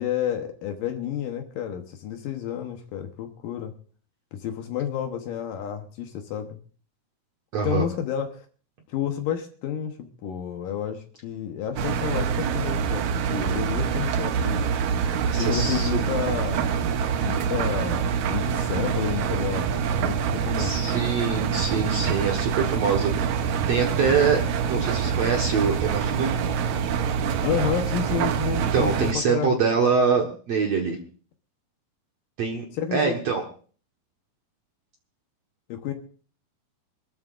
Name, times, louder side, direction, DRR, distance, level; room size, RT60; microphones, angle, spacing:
voice 1, 0.0-3.7 4.3-6.6 7.6-8.5 8.9-14.6 15.4-16.7 17.2-20.8 27.4-29.6 32.7-33.2 35.7-35.9, left 9 dB, 70° left, 5 dB, 2.4 m, -30 dB
voice 2, 7.5-7.8 15.3-15.9 20.6-23.1 23.7-24.4 24.7-26.4 28.6-31.0 32.4-32.7 32.9-33.4, right 5 dB, 60° right, 1 dB, 1.9 m, -24 dB
Engine, 11.8-29.1, right 7 dB, 85° right, 1.6 m, -25 dB
26.0 x 13.0 x 2.5 m, 0.41 s
omnidirectional pair, 4.6 m